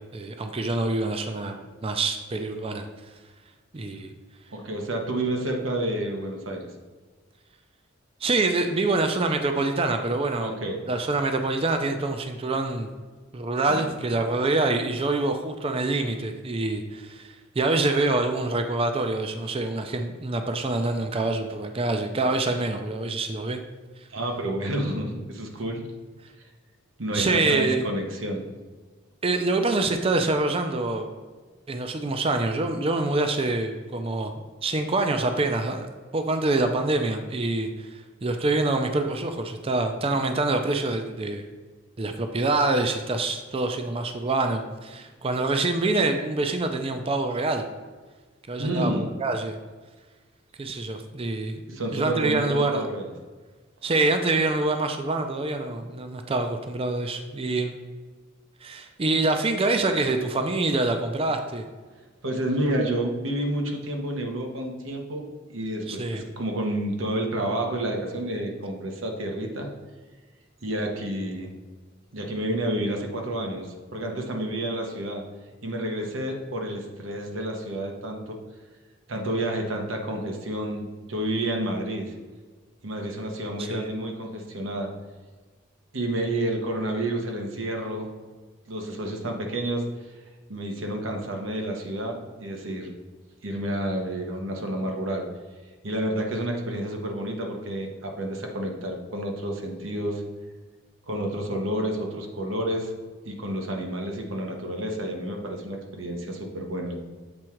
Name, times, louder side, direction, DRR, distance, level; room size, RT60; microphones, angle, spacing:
voice 1, 0.1-2.9 3.7-4.1 8.2-10.6 10.9-12.9 13.3-23.6 27.1-27.9 29.2-31.1 31.7-35.9 36.1-37.9 38.2-41.4 42.0-47.6 48.5-49.6 50.6-52.9 53.8-57.7 58.6-61.6 65.9-66.3 83.6-83.9, right 2 dB, 30° right, 6 dB, 0.4 m, -26 dB
voice 2, 4.5-6.7 10.4-10.8 13.7-13.8 24.1-25.9 27.0-28.5 48.6-49.1 51.7-53.1 62.2-65.2 65.5-69.7 70.6-71.6 72.1-75.2 75.6-78.4 79.1-82.1 82.8-84.9 85.9-88.2 88.7-89.9 90.5-92.9 93.4-95.3 95.8-100.2 101.1-102.9 103.2-107.0, right 1 dB, 90° right, 2 dB, 1.1 m, -30 dB
7.7 x 3.6 x 4.5 m, 1.4 s
head